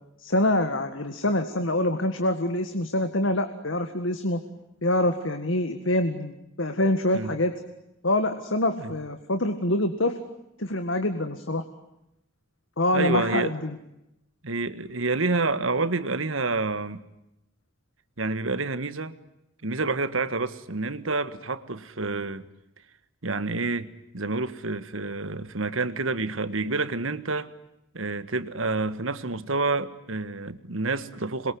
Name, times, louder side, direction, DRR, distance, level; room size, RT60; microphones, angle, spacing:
voice 1, 0.2-4.4 4.8-7.5 8.0-10.2 10.6-11.7 12.8-13.8, left 1 dB, 70° left, 1.9 m, -25 dB
voice 2, 12.9-13.5 14.4-17.1 18.2-19.1 19.6-22.5 23.2-23.9 24.1-27.5 27.9-31.5, right 3 dB, 85° right, 1.7 m, -28 dB
27.0 x 23.0 x 9.5 m
head